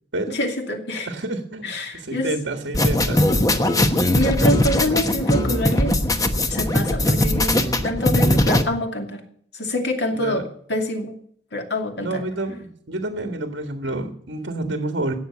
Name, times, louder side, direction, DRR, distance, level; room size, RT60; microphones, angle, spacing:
voice 1, 0.3-1.1 1.6-2.3 4.1-6.0 6.5-7.6 7.8-9.2 9.5-11.2 11.5-12.2, left 1 dB, 65° left, 3 dB, 2.6 m, -26 dB
voice 2, 1.0-3.2 10.1-10.4 12.0-15.1, right 2 dB, 70° right, 5 dB, 1.7 m, -29 dB
sound 1, 2.7-8.6, left 1 dB, 20° left, 1.1 m, -20 dB
17.5 x 6.7 x 8.4 m, 0.63 s
head